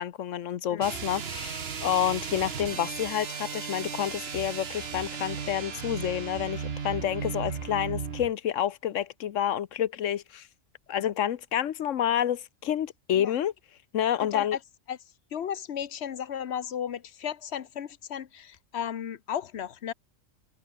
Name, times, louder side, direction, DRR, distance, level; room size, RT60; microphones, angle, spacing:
voice 1, 0.0-10.5 10.9-14.6, left 10 dB, 85° left, 1.2 m, -29 dB
sound 1, 0.8-8.3, right 6 dB, 55° right, 1.4 m, -35 dB
voice 2, 14.2-14.6 14.9-15.0 15.3-19.9, left 9 dB, 60° left, 1.1 m, -34 dB
omnidirectional pair, 1.3 m